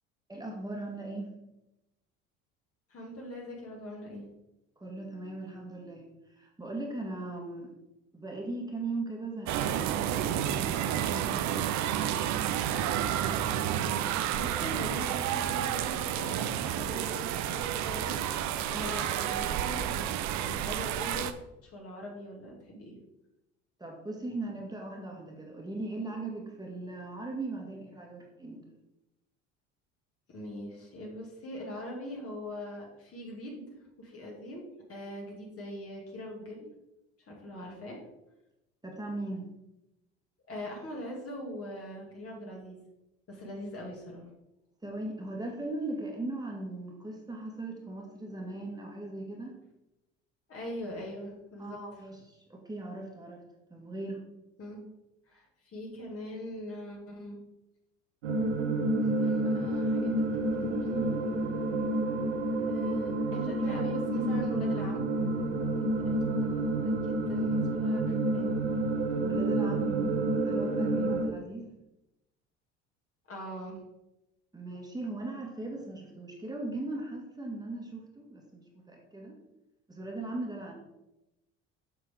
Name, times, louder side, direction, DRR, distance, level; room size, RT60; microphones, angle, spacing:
voice 1, 0.3-1.3 4.8-7.7 8.1-12.4 23.8-28.6 37.6-37.7 38.8-39.5 44.8-49.6 51.6-53.4 53.7-54.2 69.2-71.6 74.5-79.4 79.9-80.7, right 2 dB, 10° right, -1 dB, 1.8 m, -39 dB
voice 2, 2.9-4.3 14.3-18.2 18.7-21.3 21.6-23.0 30.3-36.7 37.2-38.0 40.5-42.8 43.3-44.3 50.5-51.8 54.6-54.8 55.3-57.4 59.0-60.1 60.6-61.1 62.7-65.0 66.0-66.4 66.8-68.5 73.3-73.8, equal, 45° left, -2 dB, 3.0 m, -41 dB
sound 1, 9.5-21.3, right 10 dB, 55° right, 0.7 m, -30 dB
sound 2, 58.2-71.3, right 2 dB, 85° right, 1.5 m, -29 dB
7.6 x 5.8 x 3.9 m, 0.92 s
hypercardioid pair, 70°, 33 cm